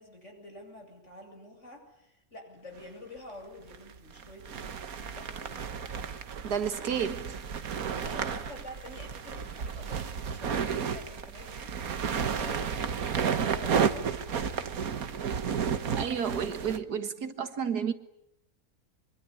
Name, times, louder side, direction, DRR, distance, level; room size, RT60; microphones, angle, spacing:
voice 1, 0.0-5.6 8.0-14.3, left 1 dB, 50° left, 8.0 m, -48 dB
sound 1, 2.8-2.9 3.7-16.8, right 7 dB, 65° right, 1.7 m, -32 dB
voice 2, 6.4-7.4 15.9-17.9, right 7 dB, 85° right, 2.1 m, -31 dB
25.0 x 24.0 x 9.9 m
omnidirectional pair, 1.6 m